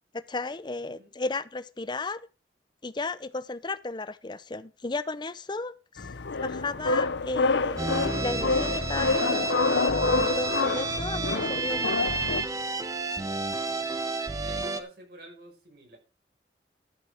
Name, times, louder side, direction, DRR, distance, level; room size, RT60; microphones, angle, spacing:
voice 1, 0.1-2.3 2.8-6.1 6.4-7.8 8.2-9.6 10.2-12.2, left 3 dB, 25° left, 0.6 m, -34 dB
voice 2, 0.8-1.1 13.5-14.0 14.4-16.0, right 1 dB, 60° right, 5.6 m, -49 dB
sound 1, 6.0-12.4, left 3 dB, 85° left, 0.7 m, -27 dB
sound 2, 7.8-14.8, right 3 dB, 20° right, 1.0 m, -31 dB
13.0 x 7.4 x 4.9 m
head